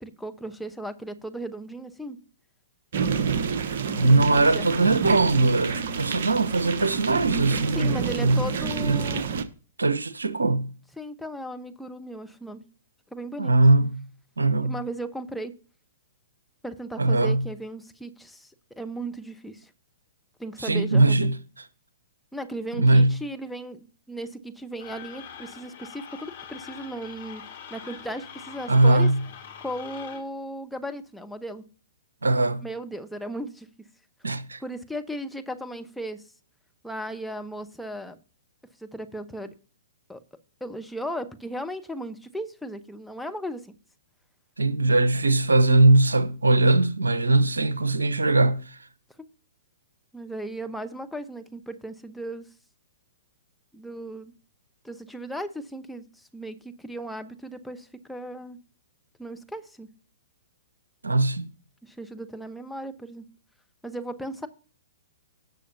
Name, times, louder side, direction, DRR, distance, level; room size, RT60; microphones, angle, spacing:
voice 1, 0.0-2.2 4.1-4.7 7.7-9.2 11.0-12.6 13.1-13.5 14.6-15.5 16.6-18.5 18.8-19.7 20.4-21.3 22.3-27.4 27.7-29.1 29.6-31.6 32.6-33.7 34.6-36.2 36.8-38.2 38.8-39.5 40.1-40.2 40.6-43.6 49.2-49.3 50.1-52.5 53.7-54.3 54.8-58.6 59.2-59.9 61.8-63.2 63.8-64.5, right 1 dB, ahead, 0.9 m, -36 dB
sound 1, 2.9-9.4, right 6 dB, 55° right, 1.0 m, -29 dB
voice 2, 3.9-8.4 8.8-9.1 9.8-10.7 13.4-14.0 14.4-14.8 17.0-17.4 20.6-21.7 22.7-23.1 28.7-29.2 32.2-32.6 34.2-34.6 44.6-48.8 61.0-61.5, right 2 dB, 80° right, 0.9 m, -21 dB
sound 2, 24.8-30.2, left 8 dB, 55° left, 2.8 m, -43 dB
17.5 x 6.5 x 2.7 m
figure-of-eight pair, 115°, 0 cm